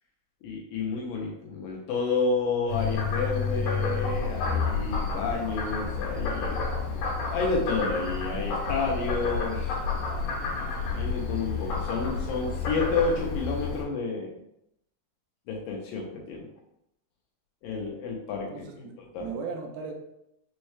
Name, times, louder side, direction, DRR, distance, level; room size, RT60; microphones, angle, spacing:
voice 1, 0.4-6.6 7.3-9.6 10.9-14.3 15.5-16.5 17.6-18.9 19.1-19.3, left 4 dB, 75° left, -1 dB, 2.2 m, -30 dB
Frog, 2.7-13.8, left 4 dB, 60° left, 2.3 m, -30 dB
voice 2, 18.5-19.9, right 5 dB, 85° right, 2 dB, 2.5 m, -37 dB
6.2 x 2.3 x 3.1 m, 0.79 s
omnidirectional pair, 4.4 m